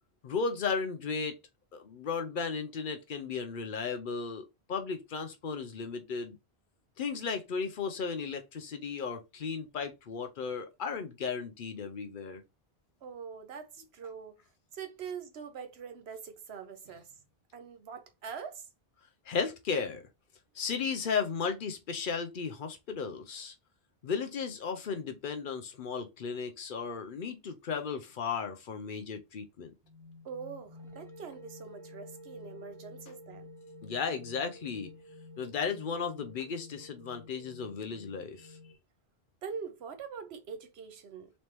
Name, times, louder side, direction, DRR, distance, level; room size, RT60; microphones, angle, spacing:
voice 1, 0.2-1.4 1.7-6.4 7.0-12.4 19.3-20.0 20.5-23.5 24.0-29.7 33.8-34.9 35.4-38.6, left 5 dB, 60° left, 0.7 m, -35 dB
voice 2, 13.0-14.4 14.7-17.2 17.5-18.7 30.2-33.5 39.4-41.3, right 6 dB, 80° right, 1.0 m, -43 dB
sound 1, 29.8-38.7, left 1 dB, 35° right, 0.7 m, -51 dB
4.1 x 3.3 x 3.0 m
omnidirectional pair, 1.0 m